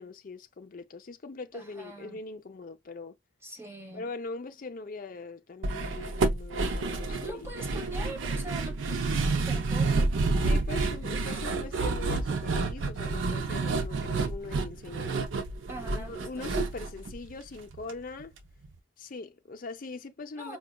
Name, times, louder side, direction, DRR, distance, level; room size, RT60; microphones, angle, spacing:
voice 1, 0.0-3.1 3.9-7.5 10.4-15.2 15.9-18.3 19.0-20.6, left 3 dB, 45° left, 0.5 m, -41 dB
voice 2, 1.5-2.2 3.4-4.1 7.2-9.0 9.4-10.2 11.6-11.7 15.7-16.5 20.4-20.6, right 2 dB, 15° right, 1.1 m, -42 dB
sound 1, 5.6-17.9 18.2-18.3 18.6-18.8, right 3 dB, 85° right, 0.5 m, -29 dB
4.8 x 2.2 x 2.2 m
head